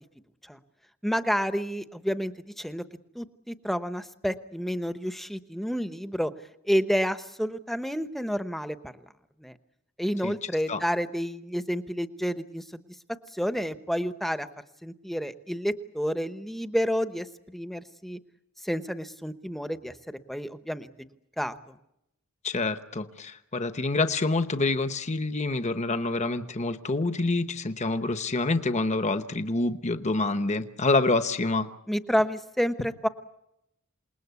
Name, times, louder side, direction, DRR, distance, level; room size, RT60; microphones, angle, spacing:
voice 1, 1.0-2.8 3.1-6.3 6.6-8.9 9.4-9.5 10.0-12.8 13.3-14.5 14.8-18.2 18.6-20.9 21.4-21.8 31.9-33.1, equal, ahead, 10 dB, 0.9 m, -30 dB
voice 2, 22.4-31.7, left 3 dB, 30° left, 10 dB, 1.0 m, -27 dB
28.0 x 20.0 x 8.3 m, 0.84 s
head